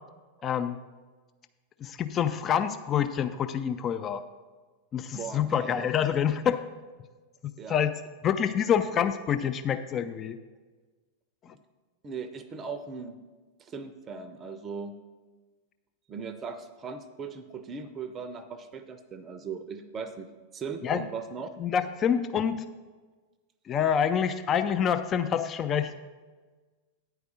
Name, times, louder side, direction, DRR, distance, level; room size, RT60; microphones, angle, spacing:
voice 1, 0.4-0.8 1.8-4.2 4.9-6.6 7.4-10.4 20.8-21.0 21.6-22.7 23.7-25.9, left 8 dB, 30° left, 10 dB, 0.4 m, -27 dB
voice 2, 5.1-5.9 7.6-7.8 11.5-11.6 12.0-13.2 13.6-14.9 16.1-20.3 20.5-21.5, right 5 dB, 25° right, 10 dB, 0.5 m, -38 dB
9.7 x 4.7 x 6.3 m, 1.4 s
figure-of-eight pair, 90°, 0 cm